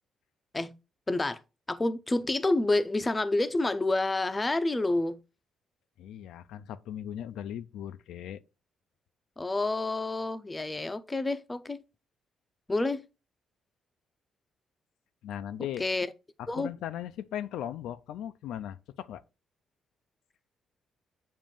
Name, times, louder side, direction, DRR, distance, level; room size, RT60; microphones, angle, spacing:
voice 1, 1.1-1.4 1.7-5.2 9.4-11.8 12.7-13.1 15.8-16.1 16.5-16.7, left 2 dB, 20° left, 0.5 m, -28 dB
voice 2, 6.0-8.4 15.2-15.9 16.4-19.2, left 10 dB, 85° left, 0.3 m, -38 dB
7.3 x 2.5 x 5.0 m
cardioid pair, 90°, 0 cm